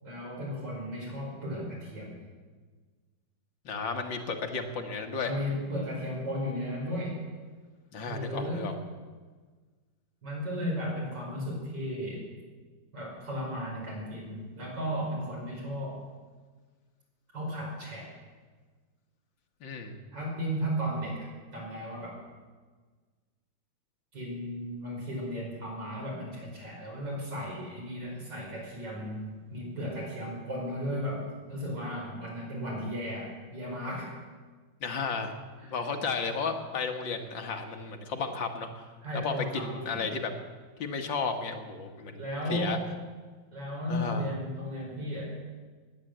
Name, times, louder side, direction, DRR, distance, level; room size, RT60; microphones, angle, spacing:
voice 1, 0.0-2.2 5.2-7.2 8.0-8.7 10.2-12.2 12.9-16.0 17.3-18.1 20.1-22.2 24.1-34.1 35.6-35.7 39.0-40.1 42.1-42.9 43.5-45.4, equal, 65° right, -3 dB, 5.9 m, -35 dB
voice 2, 3.7-5.3 7.9-8.7 19.6-20.0 34.8-35.3 35.6-38.7 39.2-40.3 40.8-42.8 43.9-44.3, left 4 dB, 70° left, 5 dB, 2.1 m, -33 dB
16.0 x 10.5 x 7.9 m, 1.4 s
omnidirectional pair, 2.1 m